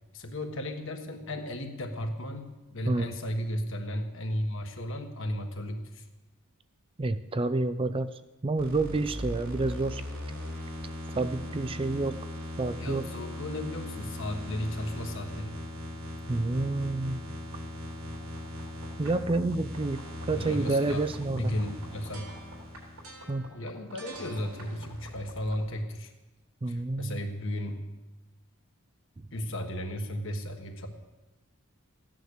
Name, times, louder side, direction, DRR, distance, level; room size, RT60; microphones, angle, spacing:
voice 1, 0.1-6.0 12.8-15.5 20.3-22.3 23.5-26.1 26.7-27.8 29.3-30.9, left 1 dB, 60° left, 4 dB, 1.5 m, -35 dB
voice 2, 7.0-10.0 11.1-12.2 12.6-13.1 16.3-17.2 19.0-20.0 20.3-21.5 23.3-23.5 26.6-27.2, right 2 dB, 25° right, 12 dB, 0.4 m, -29 dB
sound 1, 8.6-25.7, left 1 dB, 80° right, 3.6 m, -39 dB
15.0 x 9.4 x 6.6 m, 1.1 s
head